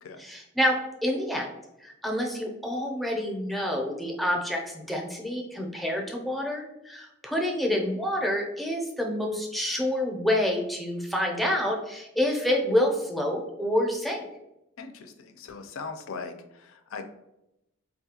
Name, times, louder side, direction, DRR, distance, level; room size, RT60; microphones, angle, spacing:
voice 1, 0.2-1.5 1.8-14.2, left 1 dB, ahead, 0 dB, 0.5 m, -28 dB
voice 2, 14.8-17.1, left 4 dB, 80° left, 7 dB, 0.4 m, -40 dB
4.1 x 2.3 x 2.8 m, 0.88 s
head